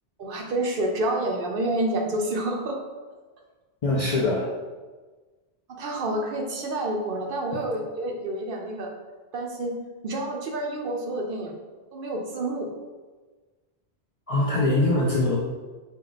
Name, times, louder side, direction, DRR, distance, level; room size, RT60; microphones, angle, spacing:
voice 1, 0.2-2.8 5.7-8.9 9.3-9.7 10.0-11.5 11.9-12.7, right 1 dB, 60° right, 1 dB, 0.7 m, -28 dB
voice 2, 3.8-4.5 7.5-7.6 14.3-15.4, left 2 dB, 50° left, -4 dB, 0.4 m, -23 dB
4.7 x 2.2 x 3.8 m, 1.3 s
omnidirectional pair, 1.1 m